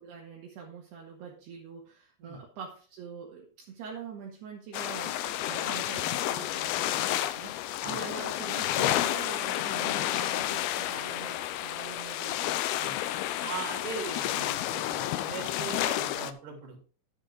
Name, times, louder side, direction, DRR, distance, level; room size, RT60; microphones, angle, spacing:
voice 1, 0.0-12.6, right 6 dB, 70° right, -1 dB, 3.7 m, -44 dB
sound 1, 4.7-16.3, left 13 dB, 80° left, 2.3 m, -31 dB
voice 2, 13.4-16.8, right 4 dB, 50° right, 3 dB, 4.6 m, -39 dB
10.5 x 9.7 x 3.7 m, 0.36 s
omnidirectional pair, 5.1 m